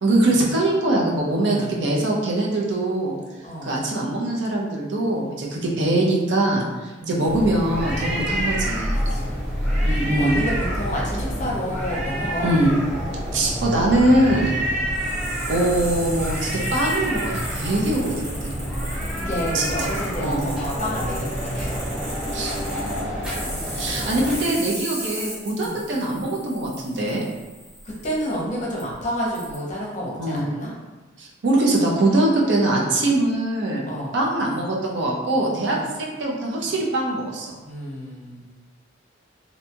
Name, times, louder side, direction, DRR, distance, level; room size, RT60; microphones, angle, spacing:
voice 1, 0.0-3.2 3.6-9.0 9.8-10.3 12.4-12.7 13.3-14.6 15.5-18.1 18.4-18.5 19.5-19.7 20.2-20.4 22.3-22.6 23.8-27.2 30.2-30.4 31.2-33.8 34.1-37.5, right 1 dB, 70° right, -2 dB, 0.5 m, -22 dB
voice 2, 1.3-2.0 3.4-3.8 7.0-7.3 9.1-9.5 10.1-12.5 19.1-21.8 23.6-24.3 25.6-25.8 27.8-30.7 33.9-34.2 35.7-35.9 37.6-38.5, equal, 40° left, -4 dB, 0.6 m, -30 dB
sound 1, 7.3-24.4, equal, 5° right, 0.6 m, -27 dB
sound 2, 14.9-28.3 28.8-28.9 29.3-29.5, right 1 dB, 40° right, 1.1 m, -37 dB
2.6 x 2.2 x 2.8 m, 1.2 s
head